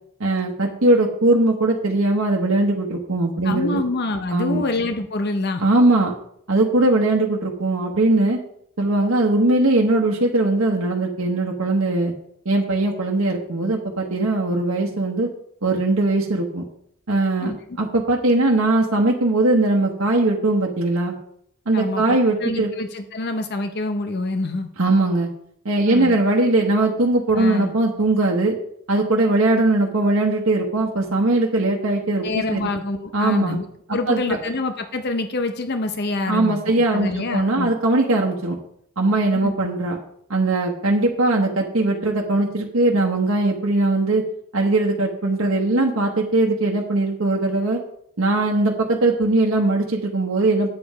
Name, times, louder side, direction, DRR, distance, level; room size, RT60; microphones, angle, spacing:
voice 1, 0.2-3.8 4.3-4.6 5.6-6.1 6.5-8.4 8.8-12.1 12.4-15.3 15.6-16.6 17.1-17.5 17.8-21.1 21.7-22.7 24.8-25.3 25.6-28.6 28.9-32.7 33.1-33.6 34.1-34.4 36.3-38.6 39.0-40.0 40.3-44.2 44.5-47.8 48.2-50.7, right 2 dB, 80° right, -1 dB, 1.1 m, -20 dB
voice 2, 3.4-5.6 17.4-17.6 21.7-24.7 25.9-26.2 27.3-27.7 32.2-37.7 39.4-39.6, left 2 dB, 50° left, 7 dB, 0.7 m, -26 dB
8.6 x 7.6 x 4.7 m, 0.71 s
head